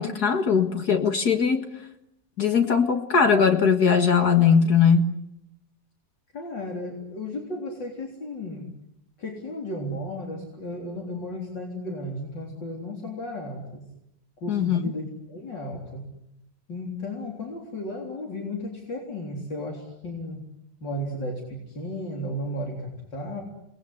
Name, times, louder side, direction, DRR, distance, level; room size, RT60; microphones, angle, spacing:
voice 1, 0.0-1.7 2.4-5.1 14.5-14.8, left 6 dB, 60° left, 2.2 m, -20 dB
voice 2, 6.3-8.7 9.2-13.8 14.4-16.1 16.7-20.4 20.8-23.4, left 1 dB, 75° left, 4.5 m, -34 dB
29.0 x 21.0 x 9.8 m
omnidirectional pair, 2.0 m